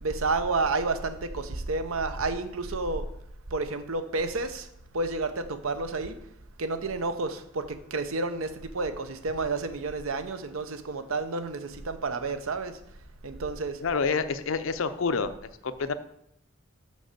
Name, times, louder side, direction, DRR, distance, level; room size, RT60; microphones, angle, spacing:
voice 1, 0.0-3.0 3.5-4.7 4.9-6.2 6.6-12.7 13.2-13.8, right 3 dB, 80° right, 10 dB, 0.8 m, -30 dB
voice 2, 13.8-15.3 15.6-15.9, left 4 dB, 70° left, 12 dB, 0.6 m, -27 dB
6.4 x 5.5 x 6.6 m, 0.75 s
head